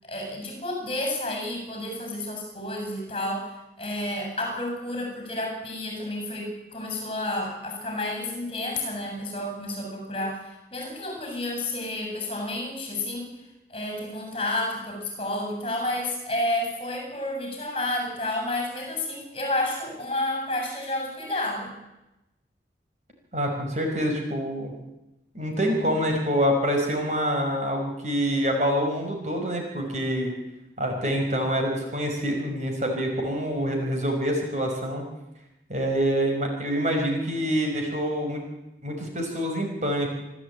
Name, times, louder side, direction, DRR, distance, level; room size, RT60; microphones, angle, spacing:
voice 1, 0.0-3.5 3.8-13.3 13.7-21.8, left 1 dB, 30° left, 3 dB, 7.3 m, -30 dB
voice 2, 23.3-24.7 25.3-30.3 30.8-35.0 35.7-38.4 38.8-40.1, equal, 40° right, 2 dB, 5.3 m, -26 dB
27.5 x 13.0 x 9.1 m, 0.95 s
head